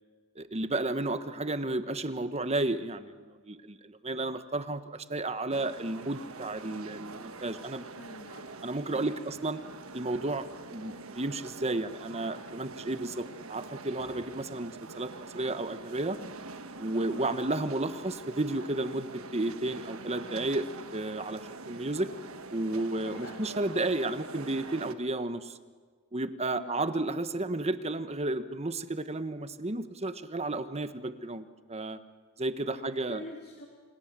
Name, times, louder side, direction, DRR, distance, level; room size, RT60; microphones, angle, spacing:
voice 1, 0.4-7.9 8.6-9.6 9.9-10.4 10.7-16.2 16.8-22.1 22.5-25.6 26.1-32.0 32.4-33.2, right 2 dB, 30° right, 11 dB, 1.3 m, -32 dB
sound 1, 5.5-24.9, right 3 dB, 70° right, 1.4 m, -45 dB
voice 2, 8.0-8.5 8.9-9.2 17.0-17.3 23.0-23.4 26.5-26.8 32.7-33.7, left 1 dB, 50° left, 1 dB, 2.9 m, -46 dB
28.5 x 27.5 x 7.6 m, 1.5 s
head